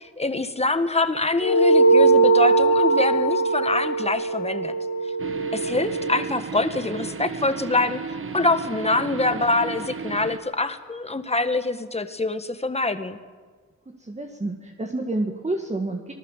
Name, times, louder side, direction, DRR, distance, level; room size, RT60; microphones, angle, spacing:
voice 1, 0.0-4.7 5.5-8.0 8.3-13.2, left 2 dB, 20° left, 10 dB, 1.5 m, -25 dB
sound 1, 1.4-6.2, right 3 dB, 70° left, 2.7 m, -20 dB
sound 2, 5.2-10.4, right 5 dB, 45° right, 1.4 m, -34 dB
voice 2, 14.0-16.1, right 2 dB, 20° right, 2 dB, 1.9 m, -29 dB
25.5 x 19.0 x 7.4 m, 1.5 s
cardioid pair, 85°, 30 cm